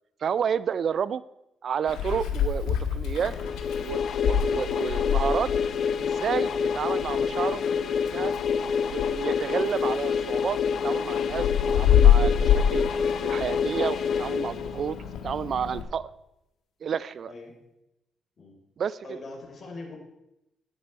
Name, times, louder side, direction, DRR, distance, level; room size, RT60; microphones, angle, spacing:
voice 1, 0.2-1.2 1.6-3.3 3.8-5.5 6.0-8.3 8.9-12.9 13.2-16.1 16.8-17.3 18.8-19.0, right 7 dB, 55° right, 18 dB, 0.3 m, -30 dB
Meow, 1.9-15.8, left 8 dB, 85° left, 1.3 m, -27 dB
sound 1, 3.3-15.2, left 6 dB, 60° left, 0.5 m, -27 dB
voice 2, 19.0-20.0, left 2 dB, 35° left, 0 dB, 3.5 m, -41 dB
11.5 x 9.6 x 4.4 m, 0.89 s
cardioid pair, 90°, 0 cm